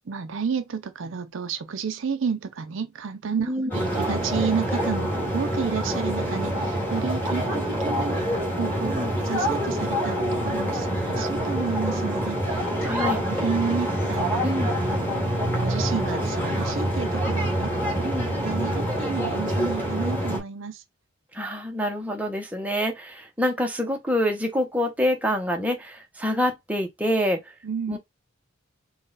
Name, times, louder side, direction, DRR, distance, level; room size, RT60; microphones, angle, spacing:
voice 1, 0.1-8.3 8.6-14.5 15.3-17.7 18.0-18.1 18.4-20.8 27.6-28.0, right 6 dB, 60° right, 0.5 m, -31 dB
sound 1, 3.7-20.4, equal, 10° left, 1.9 m, -26 dB
voice 2, 12.8-13.2 14.4-14.7 18.0-18.3 21.3-27.5 27.9-28.0, equal, 5° right, 0.7 m, -26 dB
3.7 x 2.3 x 3.9 m
head